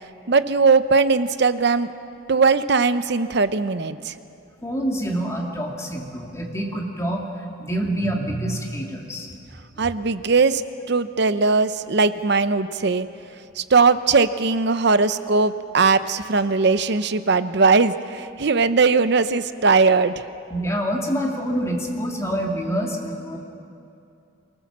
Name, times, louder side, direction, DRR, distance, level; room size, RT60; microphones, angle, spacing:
voice 1, 0.3-1.9 2.3-4.1 9.8-10.6 10.9-13.1 13.6-20.2, right 4 dB, 60° right, 12 dB, 0.7 m, -19 dB
voice 2, 4.6-7.3 7.6-9.9 20.5-23.4, right 1 dB, 15° left, 0 dB, 2.4 m, -27 dB
24.5 x 18.5 x 7.4 m, 2.6 s
head